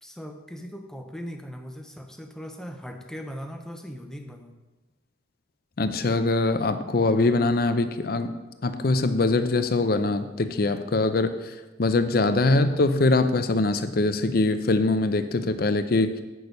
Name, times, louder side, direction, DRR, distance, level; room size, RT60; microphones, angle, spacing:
voice 1, 0.0-4.6, equal, 5° left, 4 dB, 0.7 m, -39 dB
voice 2, 5.8-8.3 8.6-16.2, left 2 dB, 50° left, 10 dB, 0.5 m, -23 dB
8.4 x 6.2 x 5.2 m, 1.2 s
head